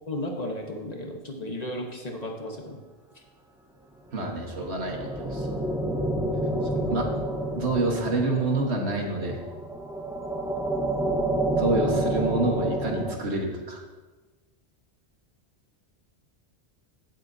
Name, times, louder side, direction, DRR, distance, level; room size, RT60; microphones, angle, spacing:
voice 1, 0.1-2.8 6.7-6.8 11.7-12.1, left 1 dB, 40° left, 1 dB, 1.2 m, -34 dB
voice 2, 4.1-5.5 6.9-7.1 7.5-9.4 11.6-13.8, right 2 dB, 80° right, 1 dB, 1.7 m, -27 dB
sound 1, 4.3-13.1, right 1 dB, 5° right, 0.8 m, -29 dB
16.0 x 7.6 x 2.7 m, 1.2 s
omnidirectional pair, 1.1 m